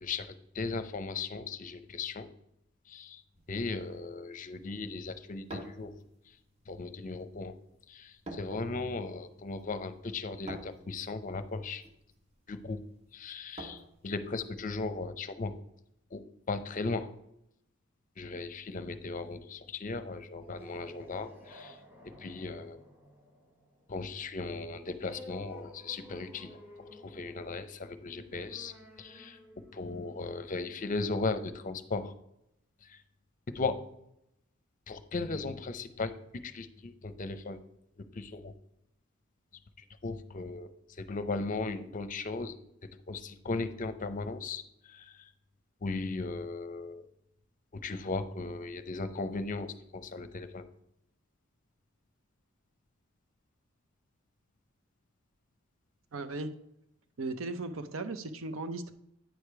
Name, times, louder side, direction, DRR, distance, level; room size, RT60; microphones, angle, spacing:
voice 1, 0.0-2.3 2.9-3.2 3.5-5.9 6.7-7.5 7.9-11.8 12.5-12.8 13.1-15.5 16.1-17.1 18.2-21.8 22.2-22.8 23.9-26.5 27.0-28.7 29.0-29.4 29.7-32.1 32.9-33.0 33.5-33.8 34.9-36.1 36.4-37.6 38.1-38.5 40.0-40.7 41.0-42.6 43.1-44.6 44.9-45.1 45.8-47.1 47.7-50.6, left 3 dB, 40° left, 11 dB, 0.6 m, -37 dB
sound 1, 3.4-14.7, right 2 dB, 30° right, 1.0 m, -50 dB
sound 2, 20.4-31.5, left 1 dB, 10° right, 1.2 m, -54 dB
voice 2, 56.1-56.5 57.2-58.9, right 2 dB, 70° right, 10 dB, 0.7 m, -37 dB
9.2 x 5.0 x 4.6 m, 0.80 s
head